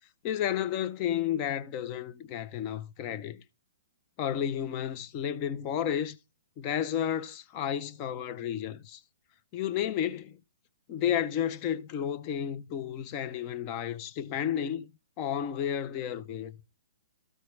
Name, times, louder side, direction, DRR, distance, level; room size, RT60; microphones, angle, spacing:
voice 1, 0.2-3.4 4.2-6.2 6.6-9.0 9.5-10.4 10.9-14.9 15.2-16.6, left 9 dB, 30° left, 0.6 m, -32 dB
13.5 x 4.6 x 3.2 m
hypercardioid pair, 150°, 0 cm